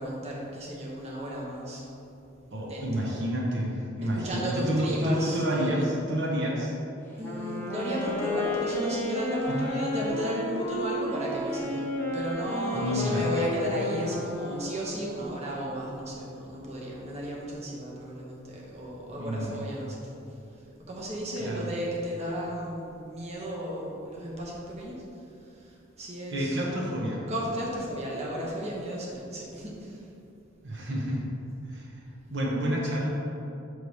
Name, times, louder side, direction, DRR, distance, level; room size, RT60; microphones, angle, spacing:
voice 1, 0.0-1.9 2.6-3.1 4.0-5.9 7.1-20.1 20.9-25.0 25.4-26.7 27.3-30.0, equal, 35° right, -4 dB, 1.0 m, -34 dB
voice 2, 2.5-6.7 9.5-9.7 12.7-13.2 19.2-19.6 21.4-21.7 26.3-27.2 30.6-31.2 31.7-31.9 32.3-33.1, equal, 60° right, -3 dB, 0.9 m, -29 dB
Wind instrument woodwind instrument, 7.1-15.2, left 1 dB, 10° left, 0.9 m, -32 dB
6.5 x 3.2 x 5.4 m, 2.8 s
head